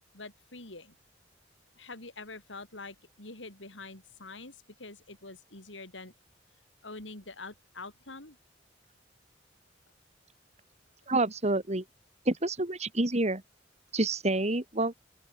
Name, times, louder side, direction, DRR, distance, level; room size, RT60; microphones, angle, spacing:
voice 1, 0.1-1.0 1.8-6.1 6.8-8.4, left 3 dB, 80° left, 5.2 m, -45 dB
voice 2, 11.1-11.8 12.3-13.4 13.9-14.9, right 2 dB, 35° right, 2.4 m, -28 dB
open air
head